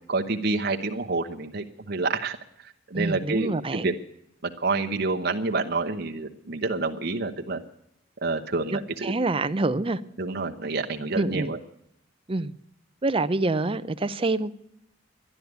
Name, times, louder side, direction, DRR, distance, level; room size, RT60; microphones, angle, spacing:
voice 1, 0.0-2.4 2.9-3.9 4.4-7.6 8.2-9.1 10.2-11.6, right 3 dB, 55° right, 0.9 m, -28 dB
voice 2, 2.9-3.9 8.7-10.0 11.1-11.5 12.3-12.5 13.0-14.5, right 2 dB, 30° right, 0.6 m, -26 dB
12.5 x 11.0 x 8.1 m
head